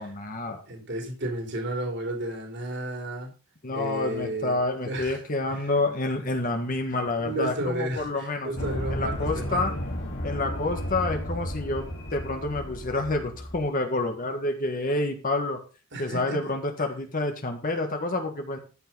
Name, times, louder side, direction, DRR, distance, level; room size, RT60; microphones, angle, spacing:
voice 1, 0.0-0.6 3.6-8.5 8.9-9.7 10.2-15.6 16.0-18.6, left 2 dB, 45° left, 4 dB, 1.7 m, -28 dB
voice 2, 0.7-3.3 3.7-5.2 5.5-5.7 7.2-9.8 15.9-16.5, right 1 dB, 60° right, 1 dB, 3.5 m, -33 dB
sound 1, 8.5-13.6, equal, 65° left, 4.1 m, -33 dB
13.5 x 5.7 x 5.5 m, 0.34 s
head